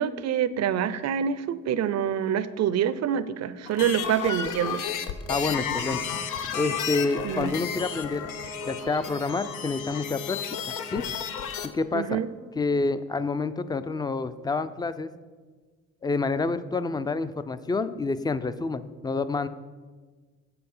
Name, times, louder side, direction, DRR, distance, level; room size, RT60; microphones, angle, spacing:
voice 1, 0.0-4.8 7.2-7.5 11.9-12.3, right 9 dB, 60° right, 15 dB, 0.6 m, -26 dB
sound 1, 3.7-11.7, left 7 dB, 85° left, 0.7 m, -33 dB
sound 2, 5.1-12.4, left 1 dB, 55° left, 1.4 m, -43 dB
voice 2, 5.3-6.0 6.5-8.3 8.7-10.4 10.7-11.0 11.7-12.2 12.6-15.1 16.0-19.5, left 3 dB, 15° left, 13 dB, 0.4 m, -28 dB
7.4 x 6.9 x 5.5 m, 1.4 s
cardioid pair, 90°, 30 cm